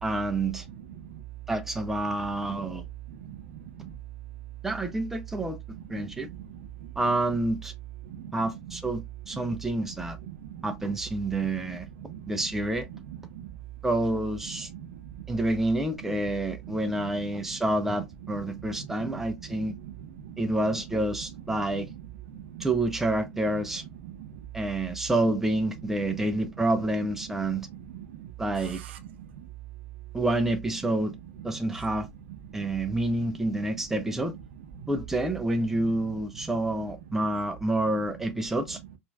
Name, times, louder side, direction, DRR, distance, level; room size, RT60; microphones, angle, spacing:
voice 1, 0.0-0.6 1.5-2.8 4.6-5.6 5.9-6.3 7.0-7.7 8.3-10.2 10.6-11.9 12.3-12.9 13.8-14.7 15.3-19.7 20.4-21.9 22.6-23.8 24.5-27.7 28.4-28.8 30.1-31.1 31.4-32.1 32.5-34.3 34.9-38.8, right 1 dB, 5° right, 0.5 m, -28 dB
voice 2, 3.2-3.9 5.9-6.5 8.1-8.3 8.7-8.8 10.3-10.6 12.0-12.3 12.9-13.5 14.7-15.0 17.2-17.3 18.5-19.1 19.6-19.9 20.2-20.3 22.3-22.6 24.2-24.4 27.9-28.3 32.6-32.7 33.7-33.8 34.8-34.9, right 10 dB, 55° right, 0.8 m, -42 dB
4.9 x 2.5 x 2.3 m
figure-of-eight pair, 90°, 7 cm